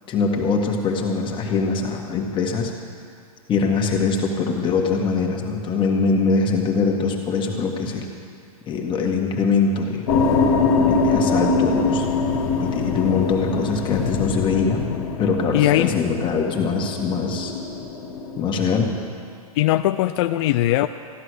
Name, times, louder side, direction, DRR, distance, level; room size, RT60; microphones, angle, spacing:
voice 1, 0.1-2.7 3.5-8.1 8.7-10.1 10.8-12.1 12.6-14.9 15.1-17.5 18.4-18.9, left 4 dB, 25° left, 1 dB, 1.8 m, -22 dB
sound 1, 10.1-18.4, left 4 dB, 65° left, 1.9 m, -23 dB
voice 2, 15.5-15.9 19.5-20.9, left 15 dB, 45° left, 10 dB, 0.4 m, -19 dB
15.0 x 11.0 x 6.4 m, 2.3 s
hypercardioid pair, 125°, 19 cm